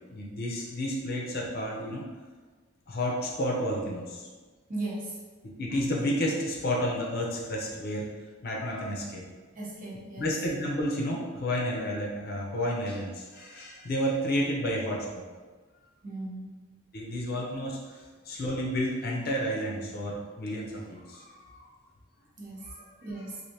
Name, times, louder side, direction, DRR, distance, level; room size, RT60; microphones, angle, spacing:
voice 1, 0.1-2.0 2.9-4.3 5.4-8.1 8.4-9.2 10.2-15.2 16.9-18.0 18.3-21.7 22.6-22.9, equal, 50° left, -2 dB, 0.6 m, -31 dB
voice 2, 4.7-5.2 9.6-10.3 16.0-16.5 22.4-22.7 23.0-23.4, right 2 dB, 45° right, -5 dB, 0.8 m, -37 dB
3.2 x 2.6 x 2.7 m, 1.4 s
head